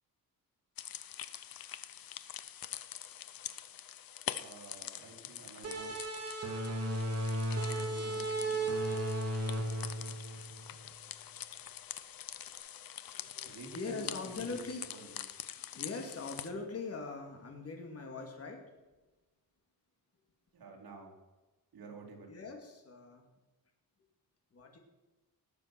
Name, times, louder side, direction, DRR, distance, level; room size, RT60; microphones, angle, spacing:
sound 1, 0.8-16.5, left 11 dB, 70° left, 0.8 m, -45 dB
voice 1, 4.4-5.9 7.7-8.7 13.4-14.6 14.9-15.0 20.5-21.1 21.7-22.3, right 4 dB, 75° right, 0 dB, 3.5 m, -50 dB
sound 2, 5.6-10.9, right 1 dB, 40° right, 3.2 m, -35 dB
voice 2, 13.1-15.2 15.5-18.7 22.3-23.2 24.5-24.8, left 4 dB, 40° left, 3 dB, 2.7 m, -42 dB
19.0 x 7.5 x 6.3 m, 1.1 s
wide cardioid pair, 150°, 37 cm